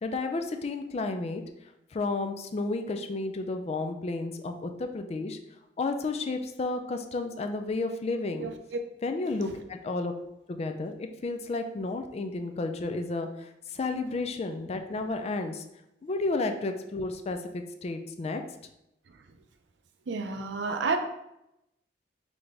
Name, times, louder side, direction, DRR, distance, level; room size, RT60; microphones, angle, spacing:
voice 1, 0.0-1.4 1.9-5.4 5.8-8.5 9.0-10.1 10.5-15.6 16.0-18.4, left 3 dB, 35° left, 7 dB, 0.3 m, -32 dB
voice 2, 20.1-21.0, right 4 dB, 70° right, 7 dB, 0.5 m, -29 dB
3.9 x 3.3 x 3.4 m, 0.86 s
head